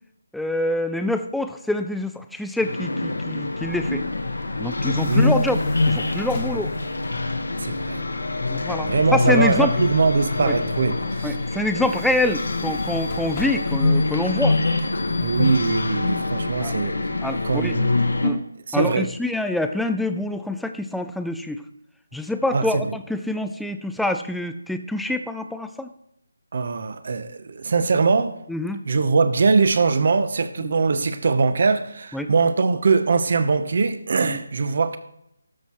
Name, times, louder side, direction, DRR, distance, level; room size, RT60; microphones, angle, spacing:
voice 1, 0.3-4.0 4.6-6.7 8.5-9.7 10.4-10.6 11.2-14.6 16.6-16.8 17.2-17.8 18.2-18.4 18.7-21.6 22.1-25.9 28.5-28.9 30.6-30.8 32.1-32.3 34.2-34.4, left 1 dB, ahead, 0.4 m, -26 dB
sound 1, 2.6-18.3, left 2 dB, 75° left, 1.3 m, -25 dB
Bus / Alarm, 3.6-18.2, left 5 dB, 35° left, 1.5 m, -38 dB
voice 2, 5.0-5.3 7.6-8.0 8.8-11.3 15.2-17.0 17.4-18.0 18.7-19.1 22.5-22.9 26.5-28.4 28.8-35.0, right 4 dB, 50° right, 0.8 m, -21 dB
12.5 x 4.5 x 4.3 m
figure-of-eight pair, 155°, 0 cm